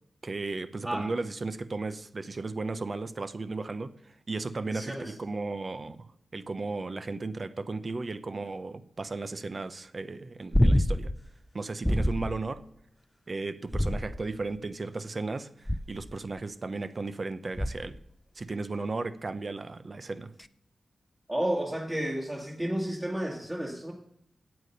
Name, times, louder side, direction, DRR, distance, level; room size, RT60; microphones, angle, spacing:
voice 1, 0.2-6.1 6.3-11.1 11.5-12.6 13.3-18.0 18.4-20.3, right 3 dB, 45° right, 0.8 m, -35 dB
voice 2, 4.7-5.2 21.3-23.9, right 1 dB, 20° right, 1.9 m, -32 dB
sound 1, 10.5-11.2 11.8-12.4 13.7-14.4 15.7-16.1 17.6-18.0 20.4-20.5, equal, 10° left, 0.5 m, -26 dB
9.0 x 8.5 x 6.7 m
cardioid pair, 70°, 0 cm